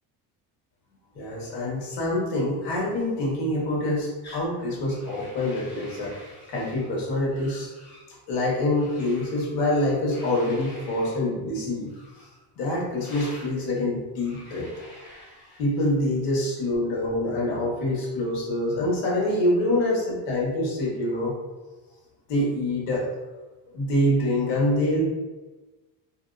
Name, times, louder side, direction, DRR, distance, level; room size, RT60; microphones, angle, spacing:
voice 1, 1.1-6.1 6.5-7.7 8.3-11.9 12.6-14.7 15.6-21.3 22.3-23.1 23.7-25.1, left 1 dB, 75° left, -3 dB, 1.3 m, -25 dB
sound 1, 4.2-4.5 4.9-6.9 7.3-8.1 8.7-9.5 10.1-11.2 11.9-12.4 13.0-13.5 14.2-15.9, equal, 25° left, 1.5 m, -47 dB
2.9 x 2.6 x 2.5 m, 1.2 s
cardioid pair, 170°, 41 cm